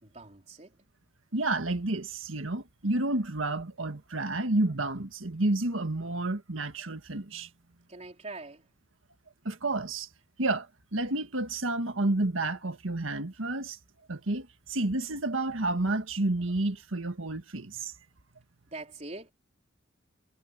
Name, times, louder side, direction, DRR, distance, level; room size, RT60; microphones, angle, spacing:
voice 1, 0.0-0.8 7.9-8.7 18.7-19.3, right 2 dB, 35° right, 3.6 m, -43 dB
voice 2, 1.3-7.5 9.5-10.1 10.4-13.8 14.1-17.9, right 2 dB, 85° right, 1.7 m, -30 dB
head